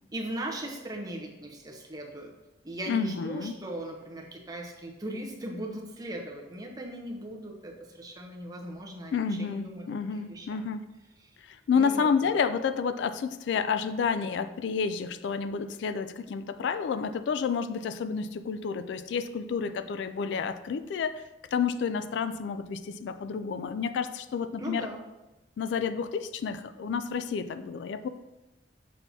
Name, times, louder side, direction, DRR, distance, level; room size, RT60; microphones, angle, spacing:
voice 1, 0.1-2.3 2.6-9.9 10.1-10.6 11.2-11.3 11.7-12.4 24.6-25.0, right 1 dB, 20° right, 1 dB, 0.8 m, -39 dB
voice 2, 2.9-3.6 9.1-10.8 11.4-21.2 21.5-24.9 25.6-28.1, left 6 dB, 75° left, 13 dB, 0.3 m, -30 dB
6.2 x 5.7 x 2.7 m, 1.0 s
head